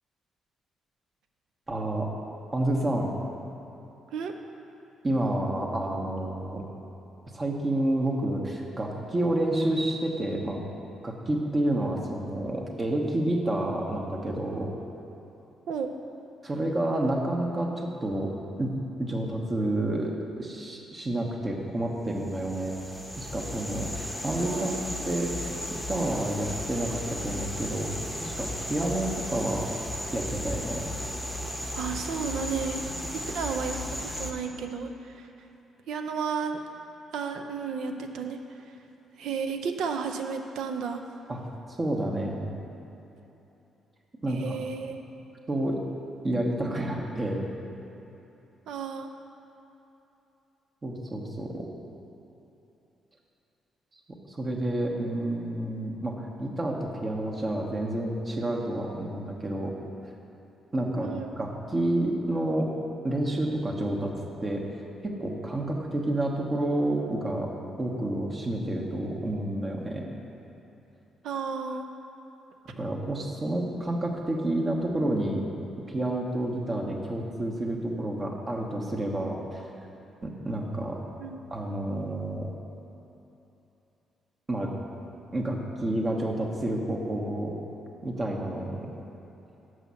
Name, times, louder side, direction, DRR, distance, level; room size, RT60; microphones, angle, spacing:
voice 1, 1.7-2.1 2.5-3.1 5.0-6.6 7.3-10.6 11.0-14.7 16.4-18.3 18.6-18.7 19.0-22.8 23.2-24.8 25.0-27.9 28.2-29.7 30.1-30.9 41.3-41.4 41.8-42.6 44.2-44.6 45.5-45.8 46.2-47.4 50.8-51.7 54.3-59.7 60.7-61.1 61.4-62.7 63.0-64.1 64.4-67.5 67.8-70.1 72.8-75.5 75.9-79.7 80.2-81.0 81.5-82.5 84.5-84.7 85.3-87.5 88.0-88.9, right 1 dB, 30° right, 0 dB, 1.1 m, -29 dB
sound 1, 22.2-34.3, left 1 dB, ahead, 1.0 m, -35 dB
voice 2, 24.5-24.8 31.8-32.8 33.1-35.3 35.9-36.6 37.1-38.4 38.7-38.8 39.2-41.0 44.3-45.0 48.7-49.1 61.0-61.3 71.2-71.8 81.2-81.4, right 5 dB, 80° right, 5 dB, 0.6 m, -33 dB
6.3 x 5.5 x 6.9 m, 3.0 s
cardioid pair, 90°, 0 cm